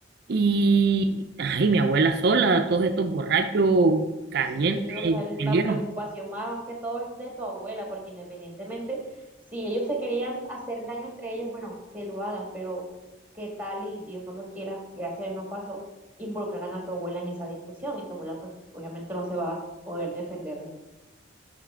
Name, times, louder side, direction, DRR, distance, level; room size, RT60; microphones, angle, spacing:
voice 1, 0.3-5.8, right 3 dB, 55° right, 6 dB, 0.5 m, -23 dB
voice 2, 4.5-9.0 9.5-12.8 13.3-15.8 16.2-19.6 19.9-20.7, right 1 dB, 10° right, -1 dB, 1.9 m, -34 dB
9.1 x 6.3 x 3.7 m, 1.1 s
head